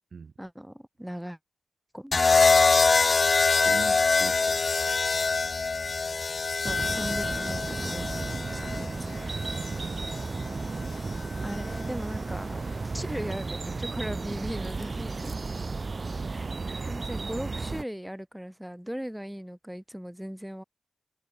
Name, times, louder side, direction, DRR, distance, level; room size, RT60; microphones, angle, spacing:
voice 1, 0.4-1.4 1.9-2.1 6.6-9.1 11.4-15.3 16.3-20.6, equal, 5° right, 2.7 m, -38 dB
sound 1, 2.1-10.2 11.5-11.8, left 4 dB, 45° left, 0.9 m, -24 dB
voice 2, 3.6-4.6 9.5-10.6 16.4-17.0, right 5 dB, 60° right, 5.5 m, -42 dB
sound 2, 6.6-17.8, right 3 dB, 40° right, 0.4 m, -34 dB
wide cardioid pair, 110°, 0 cm